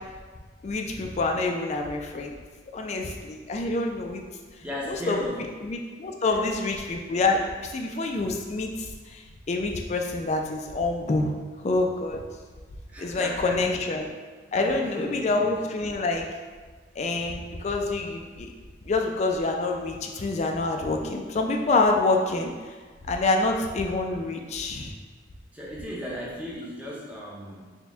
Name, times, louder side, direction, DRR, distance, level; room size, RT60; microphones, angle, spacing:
voice 1, 0.6-2.3 2.7-4.2 4.9-5.2 5.6-11.3 11.6-12.2 13.0-14.1 14.5-16.3 17.0-18.5 18.8-22.7 23.1-24.9, left 3 dB, 35° left, 3 dB, 0.3 m, -27 dB
voice 2, 4.6-5.5 6.3-6.4 12.9-13.7 14.4-15.6 25.5-27.8, equal, 5° right, -5 dB, 0.6 m, -36 dB
4.2 x 2.2 x 3.4 m, 1.5 s
head